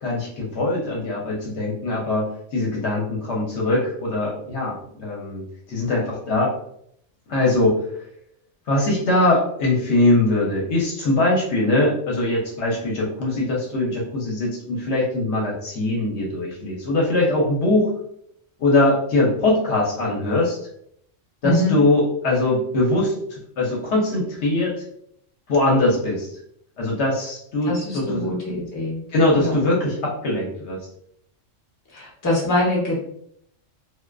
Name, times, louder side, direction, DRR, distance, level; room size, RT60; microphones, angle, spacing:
voice 1, 0.0-5.4 5.7-6.5 7.3-7.8 8.7-17.9 18.6-20.6 21.4-24.7 25.5-26.3 26.8-28.3 29.1-30.8, left 2 dB, 65° left, -2 dB, 0.9 m, -21 dB
voice 2, 21.4-21.8 27.6-29.0 29.4-29.6 31.9-33.0, left 1 dB, 20° left, -6 dB, 0.6 m, -23 dB
2.4 x 2.3 x 2.2 m, 0.69 s
omnidirectional pair, 1.3 m